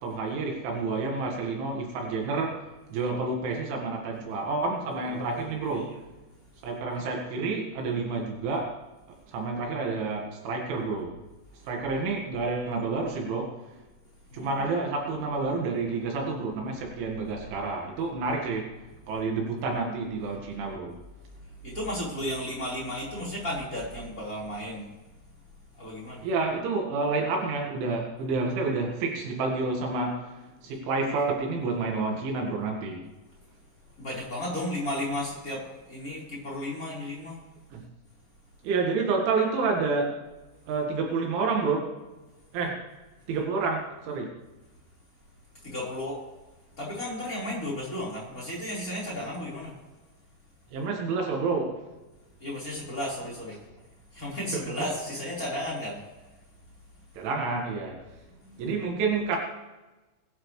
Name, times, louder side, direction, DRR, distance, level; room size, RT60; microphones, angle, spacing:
voice 1, 0.0-5.9 6.6-8.7 9.3-11.2 11.6-13.6 14.3-18.7 19.1-21.0 26.2-30.3 30.6-33.1 37.7-37.8 38.6-40.1 40.7-41.9 42.5-42.8 43.3-44.3 50.7-51.8 54.5-54.6 57.2-58.1 58.6-59.4, right 3 dB, 70° right, 0 dB, 4.1 m, -29 dB
voice 2, 5.1-6.0 14.3-14.6 21.6-24.9 25.8-26.3 34.0-37.4 45.6-46.2 46.8-49.7 52.4-53.6 54.1-56.0 58.3-58.6, left 1 dB, 20° left, -5 dB, 4.1 m, -34 dB
21.0 x 12.0 x 3.3 m, 1.1 s
omnidirectional pair, 5.9 m